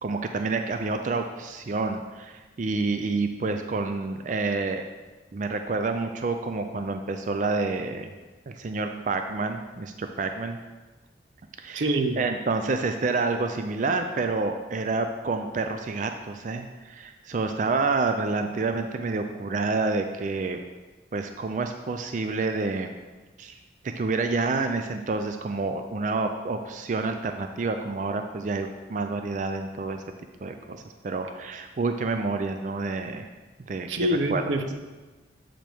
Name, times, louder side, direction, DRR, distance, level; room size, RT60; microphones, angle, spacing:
voice 1, 0.0-4.8 5.3-8.1 8.5-10.6 11.6-20.6 21.1-22.9 23.4-23.6 23.8-30.0 30.4-33.3 33.7-34.4, right 3 dB, 45° right, 6 dB, 0.4 m, -28 dB
voice 2, 11.7-12.2 33.9-34.7, right 1 dB, 90° right, 6 dB, 0.7 m, -25 dB
7.5 x 5.1 x 4.5 m, 1.3 s
head